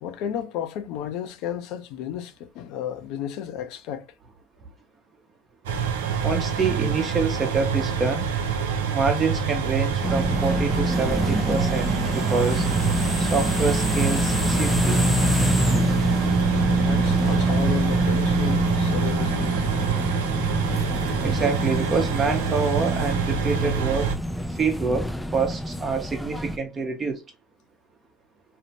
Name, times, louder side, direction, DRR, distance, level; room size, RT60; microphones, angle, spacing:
voice 1, 0.0-4.1 16.8-19.7, left 9 dB, 65° left, 0.5 m, -33 dB
sound 1, 5.7-24.2, right 7 dB, 85° right, 0.4 m, -26 dB
voice 2, 6.2-8.3 8.9-12.7 13.2-15.0 21.2-27.2, right 4 dB, 30° right, 0.8 m, -26 dB
sound 2, 10.0-26.6, equal, 5° left, 0.3 m, -25 dB
2.7 x 2.0 x 2.8 m
supercardioid pair, 95°, 0 cm